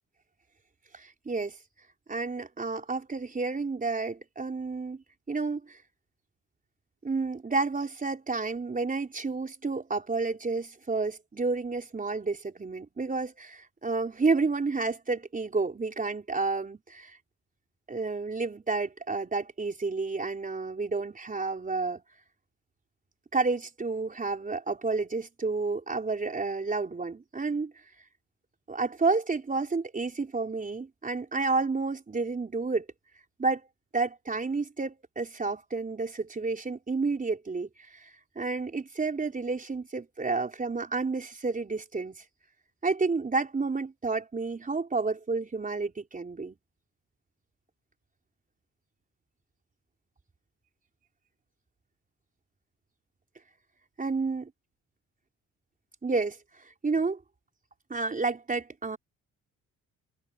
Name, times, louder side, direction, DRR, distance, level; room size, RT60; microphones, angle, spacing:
voice 1, 0.9-1.6 2.1-5.8 7.0-17.2 17.9-22.0 23.3-27.9 28.7-32.9 33.4-33.6 33.9-42.2 42.8-46.6 54.0-54.4 56.0-57.2 57.9-59.0, right 3 dB, 25° right, 4.5 m, -30 dB
cardioid pair, 90°, 30 cm